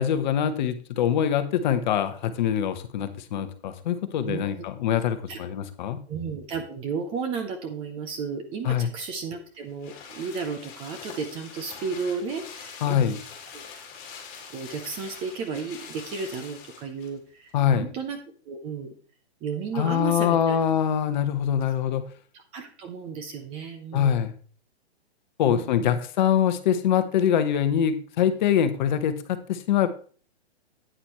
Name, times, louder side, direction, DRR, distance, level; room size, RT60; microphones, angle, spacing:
voice 1, 0.0-6.0 8.6-8.9 12.8-13.2 17.5-17.9 19.7-22.0 23.9-24.3 25.4-29.9, left 9 dB, 45° left, 10 dB, 1.0 m, -24 dB
voice 2, 4.3-4.6 5.3-5.4 6.1-13.1 13.5-13.6 14.5-18.2 18.5-18.9 19.4-20.6 22.3-24.2 25.4-26.0, right 5 dB, 15° right, 7 dB, 0.6 m, -33 dB
package rustling, 9.0-17.2 17.5-17.6, left 6 dB, 25° left, 2.8 m, -44 dB
9.7 x 8.9 x 3.1 m, 0.41 s
hypercardioid pair, 145°, 33 cm